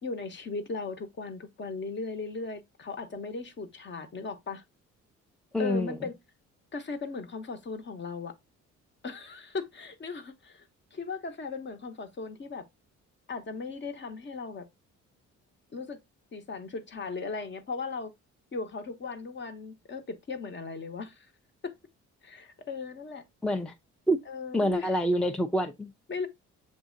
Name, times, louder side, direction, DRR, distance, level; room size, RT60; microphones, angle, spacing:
voice 1, 0.0-4.6 5.6-6.1 6.7-8.3 9.0-12.7 13.3-14.7 15.7-16.0 16.3-18.1 18.5-21.3 21.6-21.7 22.2-23.2 24.3-24.9 26.1-26.3, left 4 dB, 40° left, 0.8 m, -37 dB
voice 2, 5.5-6.0 23.4-23.7 24.1-24.2 24.5-25.9, equal, 5° left, 0.4 m, -26 dB
7.2 x 2.6 x 2.5 m
cardioid pair, 90°, 30 cm